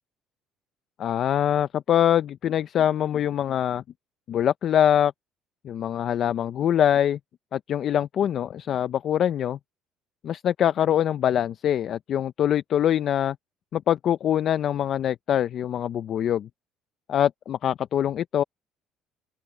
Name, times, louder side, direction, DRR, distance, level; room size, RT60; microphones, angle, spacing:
voice 1, 1.0-3.8 4.3-5.1 5.6-7.2 7.5-9.6 10.2-13.4 13.7-16.5 17.1-18.4, left 10 dB, 35° left, 0.4 m, -23 dB
open air
cardioid pair, 180°, 0 cm